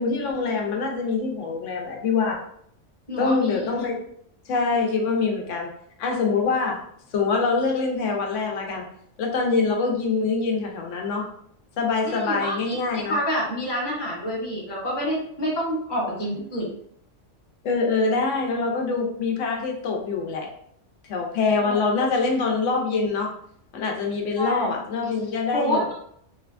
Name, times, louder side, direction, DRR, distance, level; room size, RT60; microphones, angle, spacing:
voice 1, 0.0-2.4 3.2-4.0 4.5-5.7 6.0-6.8 7.1-8.8 9.2-11.3 11.8-13.2 17.6-20.5 21.1-23.3 23.7-25.8, left 4 dB, 90° left, 1 dB, 1.0 m, -24 dB
voice 2, 3.1-3.6 12.0-12.8 13.1-16.7 21.6-21.8 24.4-24.7 25.5-25.9, equal, 25° left, -3 dB, 0.7 m, -27 dB
3.2 x 2.1 x 2.4 m, 0.66 s
omnidirectional pair, 1.2 m